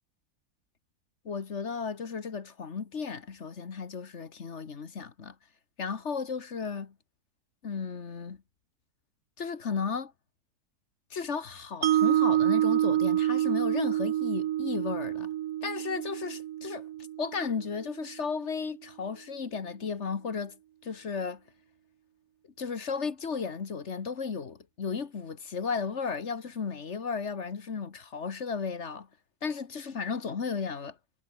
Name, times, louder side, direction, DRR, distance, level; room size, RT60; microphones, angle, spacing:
voice 1, 1.2-5.3 5.8-6.9 7.6-8.4 9.4-10.1 11.1-15.3 15.6-16.9 17.2-21.4 22.6-29.1 29.4-31.0, left 5 dB, 45° left, 1.6 m, -34 dB
Mallet percussion, 11.8-18.0, right 12 dB, 70° right, 1.2 m, -27 dB
omnidirectional pair, 1.7 m